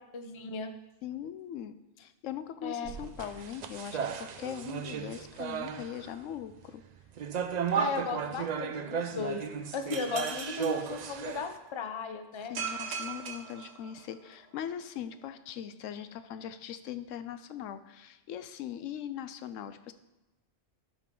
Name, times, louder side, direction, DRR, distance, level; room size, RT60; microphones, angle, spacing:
voice 1, 0.1-0.7 2.6-2.9 7.7-9.5 9.7-12.5, left 5 dB, 35° left, 7 dB, 0.5 m, -36 dB
voice 2, 1.0-6.8 12.5-19.9, left 9 dB, 85° left, 11 dB, 0.9 m, -40 dB
sound 1, 2.8-6.1 7.2-11.5, right 7 dB, 65° right, 0.4 m, -35 dB
sound 2, 9.9-11.7 12.5-14.3, right 5 dB, 85° right, 1.4 m, -40 dB
12.0 x 5.1 x 3.7 m, 1.0 s
omnidirectional pair, 1.3 m